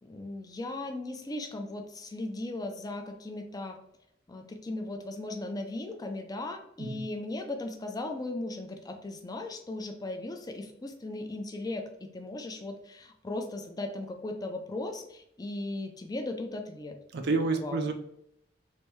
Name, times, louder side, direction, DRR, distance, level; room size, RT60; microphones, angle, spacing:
voice 1, 0.0-3.8 4.3-17.0 17.5-17.9, left 2 dB, 20° left, 4 dB, 0.4 m, -37 dB
voice 2, 17.1-17.9, right 3 dB, 60° right, 5 dB, 0.4 m, -29 dB
3.2 x 2.6 x 3.1 m, 0.76 s
head